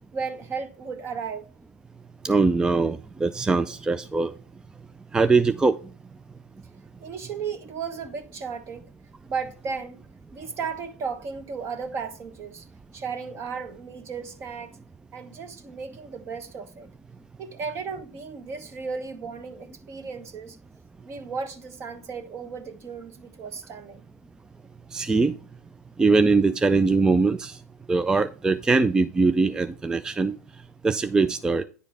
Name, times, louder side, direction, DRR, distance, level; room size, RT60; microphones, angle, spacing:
voice 1, 0.1-1.5 7.0-8.9 9.3-10.0 10.3-12.6 12.9-14.8 15.1-16.9 17.4-20.6 21.0-24.1, right 5 dB, 30° right, 1.1 m, -35 dB
voice 2, 2.2-4.3 5.1-5.7 24.9-25.4 26.0-27.6 27.9-30.4 30.8-31.6, right 3 dB, 10° right, 0.3 m, -21 dB
9.9 x 5.0 x 3.4 m
figure-of-eight pair, 90°, 8 cm